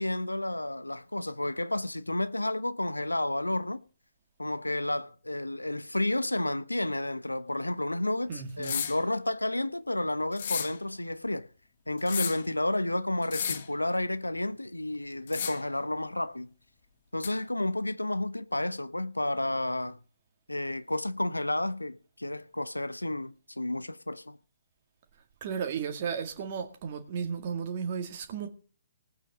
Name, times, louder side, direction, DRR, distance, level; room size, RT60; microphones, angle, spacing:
voice 1, 0.0-3.8 4.4-11.5 11.9-16.5 17.1-20.0 20.5-24.4, left 1 dB, 85° left, 1.0 m, -31 dB
voice 2, 8.3-8.8 25.4-28.5, right 7 dB, 40° right, 2.0 m, -34 dB
sound 1, 8.6-9.0 10.3-10.8 12.0-12.5 13.2-13.7 15.3-15.7 17.2-17.3, left 7 dB, 50° left, 1.6 m, -33 dB
18.5 x 8.9 x 4.1 m
figure-of-eight pair, 135°, 0 cm